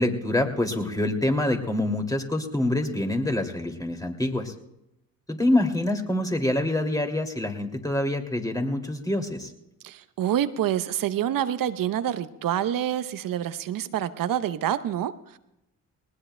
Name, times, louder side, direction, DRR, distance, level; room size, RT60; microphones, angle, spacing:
voice 1, 0.0-4.5 5.3-9.5, left 1 dB, 10° left, 3 dB, 2.6 m, -26 dB
voice 2, 9.8-15.4, right 11 dB, 60° right, 14 dB, 0.9 m, -27 dB
19.5 x 19.5 x 2.2 m, 0.85 s
hypercardioid pair, 50°, 38 cm